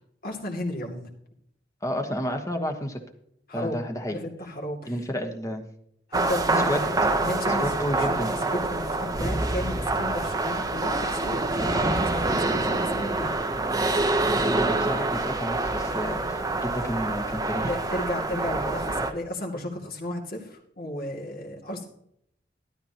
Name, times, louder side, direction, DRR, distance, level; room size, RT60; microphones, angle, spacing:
voice 1, 0.2-1.1 3.5-3.8 4.1-4.9 6.1-13.5 17.6-21.9, left 1 dB, 55° left, 1 dB, 2.4 m, -34 dB
voice 2, 1.8-3.0 3.5-4.2 4.9-5.6 6.7-6.8 7.6-8.3 14.3-17.7, equal, 20° left, 5 dB, 1.3 m, -31 dB
sound 1, 6.1-19.1, right 2 dB, 20° right, 0.9 m, -26 dB
12.5 x 12.5 x 2.9 m, 0.71 s
head